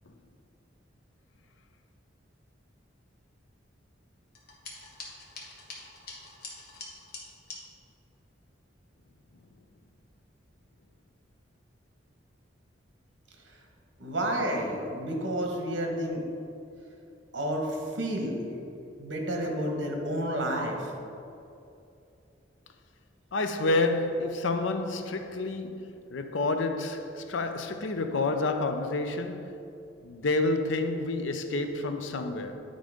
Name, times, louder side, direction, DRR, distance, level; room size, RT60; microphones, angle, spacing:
sound 1, 4.3-7.6, left 3 dB, 50° left, 1.2 m, -44 dB
voice 1, 14.0-16.2 17.3-18.5 19.0-20.9, right 1 dB, 70° right, 1.2 m, -30 dB
voice 2, 23.3-29.6 30.0-32.6, left 2 dB, 75° left, 0.6 m, -29 dB
9.5 x 3.8 x 4.9 m
head